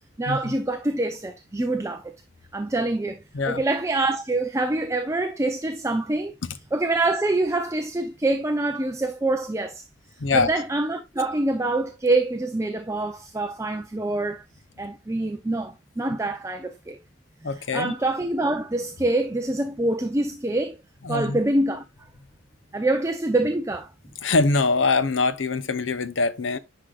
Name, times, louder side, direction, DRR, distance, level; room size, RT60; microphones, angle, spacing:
voice 1, 0.2-2.2 2.5-6.3 6.7-9.8 10.3-14.4 14.8-17.0 17.5-20.8 21.1-21.8 22.7-23.9, right 2 dB, 15° right, 0.6 m, -25 dB
voice 2, 10.2-10.5 17.4-18.0 21.0-21.4 24.2-26.6, left 3 dB, 75° left, 0.8 m, -23 dB
10.0 x 4.9 x 2.4 m
head